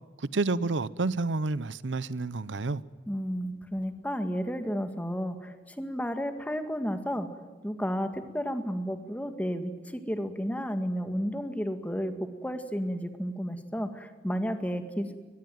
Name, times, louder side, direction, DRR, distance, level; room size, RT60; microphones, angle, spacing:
voice 1, 0.2-2.8, right 3 dB, 90° right, 0.8 m, -29 dB
voice 2, 3.1-7.3 7.6-15.2, equal, 10° left, 2.0 m, -32 dB
23.5 x 20.0 x 9.3 m
head